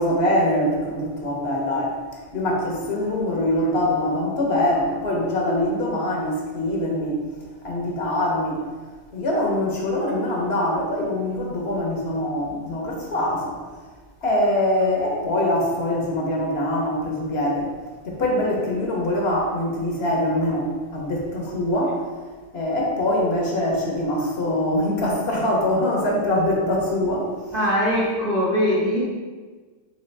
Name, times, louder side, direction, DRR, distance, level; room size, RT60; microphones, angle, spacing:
voice 1, 0.0-2.0 2.3-7.2 7.6-8.6 9.1-13.6 14.2-17.7 18.0-22.0 22.5-27.3, left 1 dB, 60° left, -2 dB, 1.0 m, -23 dB
voice 2, 27.5-29.0, equal, 50° right, -5 dB, 0.6 m, -21 dB
4.0 x 3.1 x 3.3 m, 1.4 s
omnidirectional pair, 1.2 m